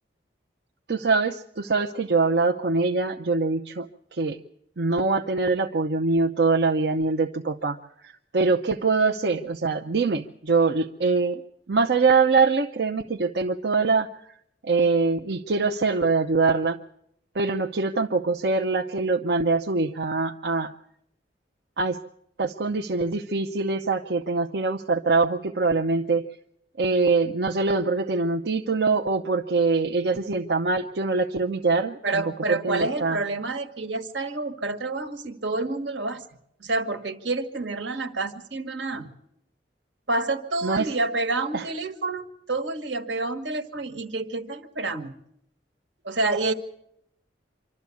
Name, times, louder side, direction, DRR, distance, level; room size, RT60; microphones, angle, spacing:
voice 1, 0.9-4.4 4.8-11.4 11.7-14.1 14.6-16.8 17.3-20.7 21.8-22.0 22.4-26.3 26.8-32.2 32.5-33.2 40.6-40.9 41.5-41.7, right 4 dB, 65° right, 4 dB, 0.7 m, -23 dB
voice 2, 32.0-36.2 36.6-39.1 40.1-45.2 46.0-46.5, right 2 dB, 85° right, 8 dB, 1.6 m, -28 dB
25.5 x 12.5 x 8.4 m, 0.75 s
head